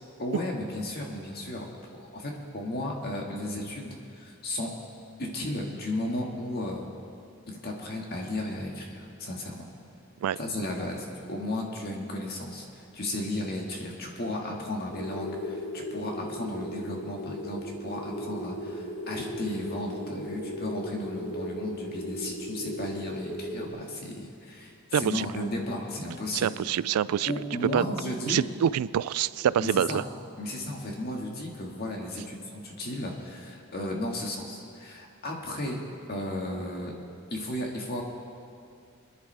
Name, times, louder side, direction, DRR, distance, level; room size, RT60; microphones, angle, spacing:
voice 1, 0.2-1.7 1.9-4.7 5.2-6.9 7.5-9.7 10.4-26.5 27.3-28.4 29.6-30.0 30.4-35.8 36.1-36.9 37.3-38.0, left 1 dB, 45° left, 0 dB, 1.9 m, -34 dB
sound 1, 14.9-23.7, equal, 60° left, 3.9 m, -37 dB
voice 2, 24.9-25.3 26.3-27.3 27.7-27.8 28.3-30.0, right 9 dB, 85° right, 19 dB, 0.3 m, -26 dB
24.0 x 10.5 x 3.4 m, 2.5 s
head